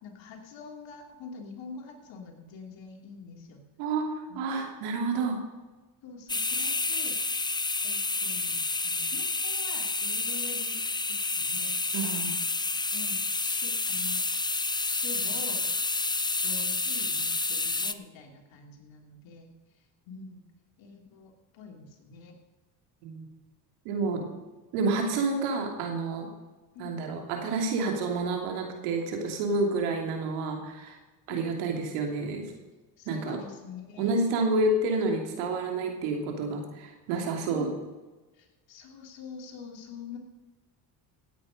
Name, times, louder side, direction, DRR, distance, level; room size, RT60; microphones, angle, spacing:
voice 1, 0.0-3.7 4.3-4.4 6.0-7.2 7.8-10.8 11.1-11.8 12.9-14.2 14.8-15.6 16.4-19.5 20.1-20.4 20.8-22.4 26.7-27.0 31.3-31.5 33.0-34.7 37.5-37.7 38.3-40.2, left 5 dB, 65° left, 2 dB, 3.2 m, -45 dB
voice 2, 4.3-5.4 11.9-12.3 23.0-23.3 23.8-24.2 24.7-26.3 26.8-31.0 31.3-32.4 33.1-33.4 34.0-37.7, right 3 dB, 80° right, 2 dB, 3.0 m, -29 dB
sound 1, 6.3-17.9, left 3 dB, 10° left, 0.6 m, -29 dB
16.0 x 8.8 x 5.2 m, 1.2 s
supercardioid pair, 70°, 49 cm